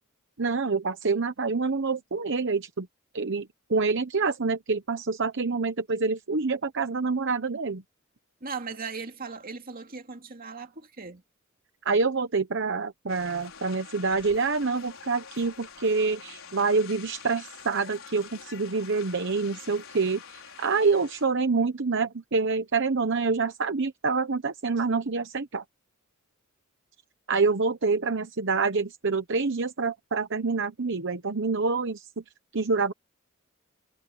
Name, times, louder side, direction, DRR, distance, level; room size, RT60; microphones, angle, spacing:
voice 1, 0.4-2.9 3.1-7.8 11.8-25.6 27.3-32.2 32.5-32.9, right 4 dB, 60° right, 1.0 m, -27 dB
voice 2, 8.4-11.2, right 5 dB, 45° right, 2.5 m, -38 dB
sound 1, 13.1-21.2, left 6 dB, 70° left, 5.1 m, -46 dB
head